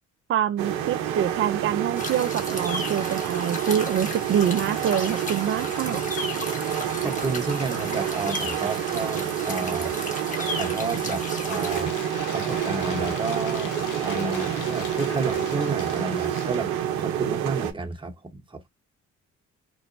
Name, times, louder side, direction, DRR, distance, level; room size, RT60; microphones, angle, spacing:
voice 1, 0.3-6.0, right 9 dB, 40° right, 0.4 m, -25 dB
sound 1, 0.6-17.7, right 10 dB, 85° right, 0.6 m, -28 dB
sound 2, 2.0-11.9, left 2 dB, 25° left, 1.1 m, -34 dB
voice 2, 6.8-9.9 10.5-11.9 12.3-18.7, right 3 dB, 15° right, 0.9 m, -31 dB
Cheering / Applause / Crowd, 11.5-16.7, left 8 dB, 65° left, 0.6 m, -39 dB
3.0 x 2.1 x 2.6 m
supercardioid pair, 60°, 34 cm